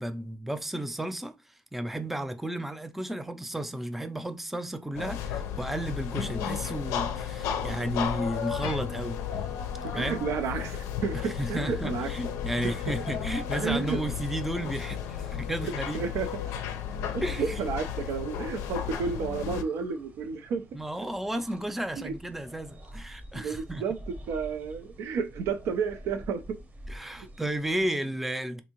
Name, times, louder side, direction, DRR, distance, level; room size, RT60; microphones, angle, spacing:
voice 1, 0.0-9.2 9.9-10.2 11.2-16.1 17.2-17.6 20.7-23.8 26.9-28.6, right 1 dB, 5° right, 0.4 m, -33 dB
sound 1, 4.9-19.6, left 8 dB, 90° left, 0.4 m, -33 dB
voice 2, 9.8-12.1 13.6-14.0 15.9-16.3 17.1-20.6 22.0-22.1 23.3-26.6 27.2-27.3, right 6 dB, 80° right, 0.4 m, -31 dB
sound 2, 17.7-27.9, right 1 dB, 35° right, 0.8 m, -48 dB
3.5 x 2.6 x 2.9 m
supercardioid pair, 70°, 5 cm